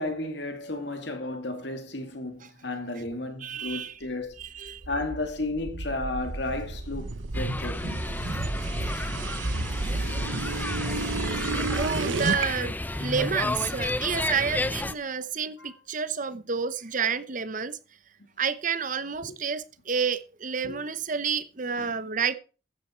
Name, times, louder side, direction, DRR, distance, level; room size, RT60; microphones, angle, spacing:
voice 1, 0.0-4.3 4.9-8.0 15.6-15.7 19.3-19.4 20.6-20.8 21.8-21.9, left 2 dB, 65° left, 2.4 m, -33 dB
voice 2, 3.4-3.9 4.4-4.8 11.7-17.8 18.4-22.4, right 6 dB, 45° right, 0.9 m, -30 dB
sound 1, 4.4-12.5, right 3 dB, 85° right, 1.0 m, -31 dB
sound 2, 7.3-14.9, left 2 dB, 10° left, 0.5 m, -32 dB
13.0 x 9.3 x 4.5 m
head